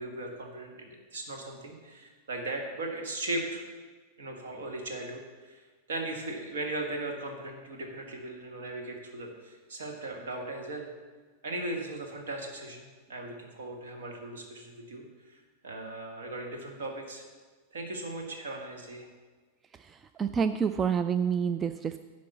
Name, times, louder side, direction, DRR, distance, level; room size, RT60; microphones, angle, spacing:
voice 1, 0.0-3.6 4.2-5.6 5.9-10.9 11.4-17.2 17.7-19.1, right 2 dB, 65° right, 2 dB, 1.7 m, -38 dB
voice 2, 19.7-22.0, right 6 dB, 20° right, 10 dB, 0.3 m, -28 dB
10.5 x 5.2 x 7.1 m, 1.4 s
figure-of-eight pair, 90°, 0 cm